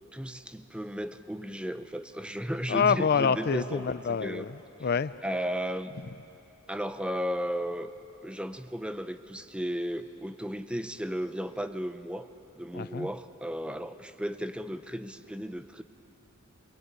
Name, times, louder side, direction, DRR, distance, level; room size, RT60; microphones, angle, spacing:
voice 1, 0.1-3.8 4.2-4.4 5.2-5.9 6.7-7.9 8.2-12.3 12.6-15.8, equal, 5° right, 0.6 m, -34 dB
voice 2, 2.7-5.1 12.7-13.1, left 6 dB, 45° left, 0.5 m, -27 dB
23.0 x 20.5 x 9.0 m
head